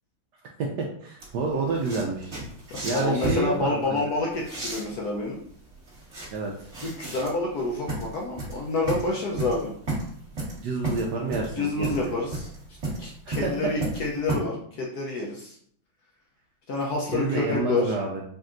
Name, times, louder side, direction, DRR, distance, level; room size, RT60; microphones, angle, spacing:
voice 1, 0.6-2.3 2.8-4.1 6.3-6.7 10.6-12.1 13.2-13.7 17.1-18.2, right 3 dB, 70° right, -1 dB, 1.0 m, -29 dB
sound 1, 1.2-14.3, right 2 dB, 35° right, 1.9 m, -33 dB
voice 2, 2.7-5.4 6.8-9.7 11.6-12.5 13.0-15.6 16.7-17.9, left 3 dB, 65° left, -3 dB, 1.0 m, -28 dB
5.3 x 2.6 x 2.5 m, 0.62 s
omnidirectional pair, 2.2 m